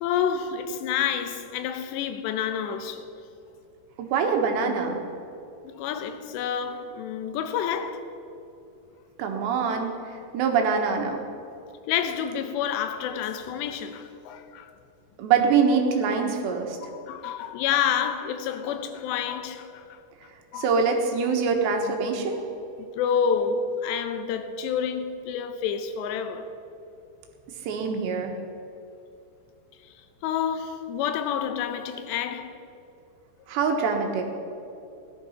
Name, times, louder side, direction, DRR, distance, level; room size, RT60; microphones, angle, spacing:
voice 1, 0.0-3.1 5.6-8.1 11.9-14.7 16.2-16.3 16.9-19.9 20.5-20.7 22.8-26.5 29.8-29.9 30.2-32.6, left 8 dB, 90° left, 3.1 m, -29 dB
voice 2, 4.0-5.0 9.2-9.9 10.3-11.2 15.2-16.8 20.6-22.4 27.7-28.3 33.5-34.2, right 5 dB, 85° right, 3.7 m, -24 dB
17.0 x 11.5 x 5.8 m
omnidirectional pair, 4.9 m